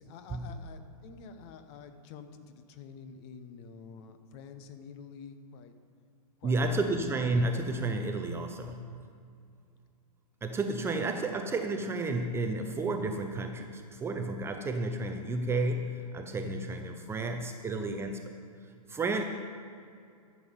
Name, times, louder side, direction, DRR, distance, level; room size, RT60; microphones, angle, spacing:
voice 1, 0.0-5.7 6.4-7.0, left 6 dB, 40° left, 9 dB, 1.0 m, -48 dB
voice 2, 6.4-9.0 10.4-18.3 18.9-19.2, right 2 dB, 10° right, 5 dB, 0.5 m, -31 dB
13.5 x 7.4 x 5.2 m, 2.3 s
hypercardioid pair, 130°, 20 cm